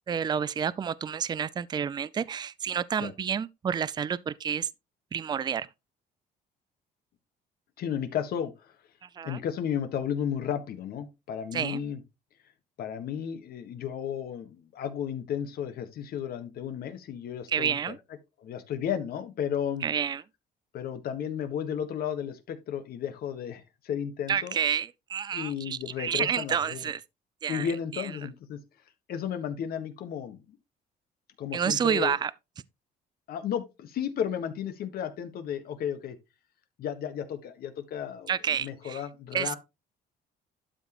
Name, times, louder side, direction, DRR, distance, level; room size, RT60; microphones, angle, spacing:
voice 1, 0.1-4.7 5.1-5.7 9.2-9.4 11.5-11.8 17.5-18.0 19.8-20.2 24.3-27.0 27.4-27.7 27.9-28.0 31.5-32.3 38.3-39.0 39.3-39.5, right 7 dB, 25° right, 0.4 m, -29 dB
voice 2, 7.8-8.7 9.2-12.0 12.8-17.9 18.4-19.9 20.7-24.6 25.3-26.8 27.5-28.6 29.1-30.6 31.4-32.2 33.3-36.2 36.8-39.6, left 8 dB, 65° left, 1.5 m, -33 dB
12.0 x 5.1 x 3.0 m
cardioid pair, 110°, 17 cm